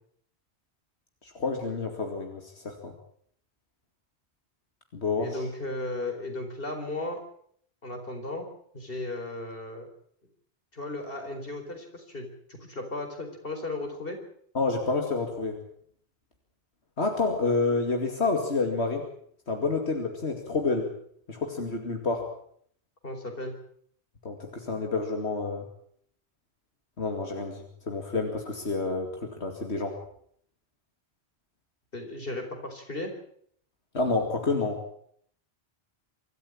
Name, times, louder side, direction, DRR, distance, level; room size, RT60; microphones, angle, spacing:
voice 1, 1.3-2.9 4.9-5.4 14.5-15.6 17.0-19.1 19.5-20.9 21.3-22.3 24.2-25.7 27.0-30.0 33.9-34.8, left 3 dB, 90° left, 3 dB, 2.8 m, -29 dB
voice 2, 5.2-7.2 7.8-8.5 8.7-9.9 10.7-14.2 23.0-23.5 31.9-33.1, left 2 dB, 60° left, 4 dB, 4.7 m, -35 dB
25.5 x 14.0 x 8.8 m, 0.64 s
omnidirectional pair, 1.1 m